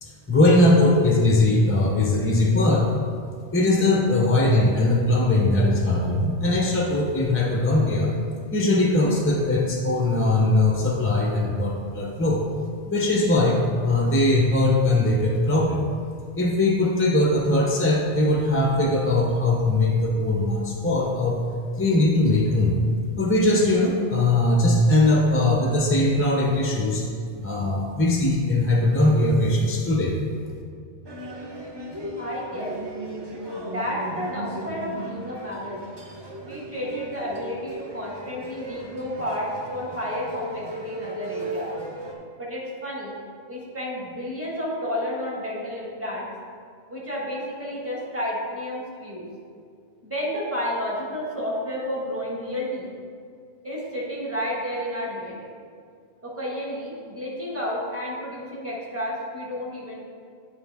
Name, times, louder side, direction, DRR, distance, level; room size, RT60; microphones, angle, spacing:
voice 1, 0.0-2.9 3.5-8.1 8.5-12.4 12.9-15.8 16.3-21.4 21.8-22.8 23.2-27.0 27.4-30.2, left 2 dB, 20° left, -1 dB, 0.4 m, -20 dB
sound 1, 31.0-42.1, right 1 dB, 30° right, 0.6 m, -36 dB
voice 2, 32.2-32.8 33.5-35.8 36.4-41.7 42.4-43.1 43.5-46.3 46.9-49.3 50.0-52.9 53.6-55.5 56.2-60.0, equal, 10° right, -5 dB, 1.5 m, -31 dB
9.3 x 4.6 x 3.5 m, 2.2 s
omnidirectional pair, 1.2 m